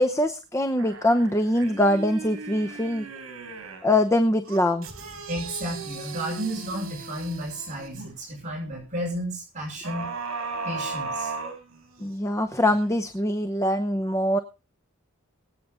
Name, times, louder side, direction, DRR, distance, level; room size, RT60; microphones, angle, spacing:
voice 1, 0.0-3.1 3.8-4.9 12.0-14.4, left 1 dB, 15° left, 8 dB, 0.8 m, -23 dB
sound 1, 0.8-3.9 4.4-8.1 9.8-12.2 12.7-12.8, right 4 dB, 70° right, 4.5 m, -37 dB
voice 2, 5.3-10.1 10.6-11.3, equal, 35° right, -2 dB, 6.5 m, -32 dB
23.5 x 8.6 x 3.7 m, 0.32 s
head